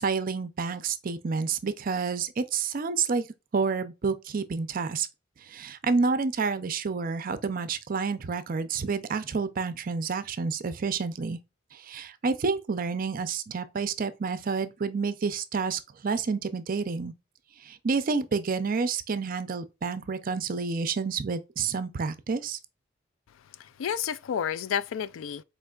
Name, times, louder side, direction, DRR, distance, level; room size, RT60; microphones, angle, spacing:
voice 1, 0.0-3.3 3.5-5.1 5.5-11.4 11.7-17.1 17.6-22.6, right 5 dB, 45° right, 0.5 m, -29 dB
voice 2, 23.6-25.4, left 8 dB, 80° left, 0.3 m, -31 dB
4.4 x 3.3 x 2.3 m
head